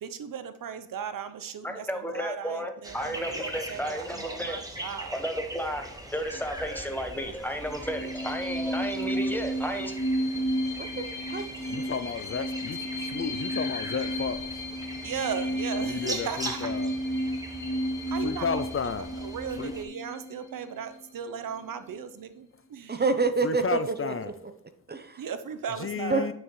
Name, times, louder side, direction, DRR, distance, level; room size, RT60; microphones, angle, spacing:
voice 1, 0.0-1.9 2.1-5.2 11.7-11.8 15.0-16.7 17.3-17.4 18.1-18.6 19.2-23.0 25.2-26.3, right 7 dB, 70° right, 11 dB, 0.8 m, -37 dB
voice 2, 1.6-9.9, equal, 5° left, 5 dB, 1.4 m, -33 dB
sound 1, 2.8-19.8, right 1 dB, 10° right, 1.4 m, -41 dB
sound 2, 7.6-20.9, equal, 55° left, 2.8 m, -32 dB
voice 3, 10.8-11.4 22.9-24.1 24.9-25.2 26.1-26.3, right 4 dB, 30° right, 8 dB, 0.8 m, -27 dB
voice 4, 11.7-14.6 15.8-16.9 18.2-19.1 19.6-19.7 23.4-24.3 25.8-26.3, left 6 dB, 40° left, 12 dB, 0.5 m, -32 dB
9.4 x 6.0 x 3.1 m, 0.75 s
cardioid pair, 85°, 34 cm